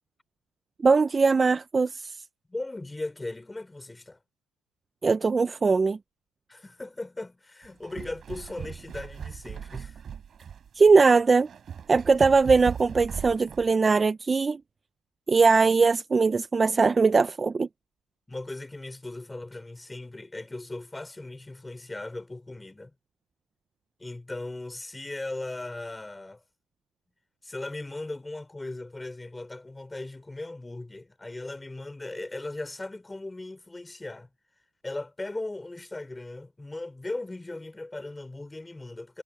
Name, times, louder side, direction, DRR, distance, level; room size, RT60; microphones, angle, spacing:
voice 1, 0.8-2.2 5.0-6.0 10.8-11.5 11.9-14.6 15.3-17.7, right 4 dB, 20° right, 0.5 m, -21 dB
voice 2, 2.5-4.2 6.5-10.0 18.3-22.9 24.0-26.4 27.4-34.3 34.8-39.2, left 2 dB, 10° left, 3.5 m, -38 dB
sound 1, 7.6-13.7, right 7 dB, 35° right, 6.8 m, -39 dB
cardioid pair, 130°, 0 cm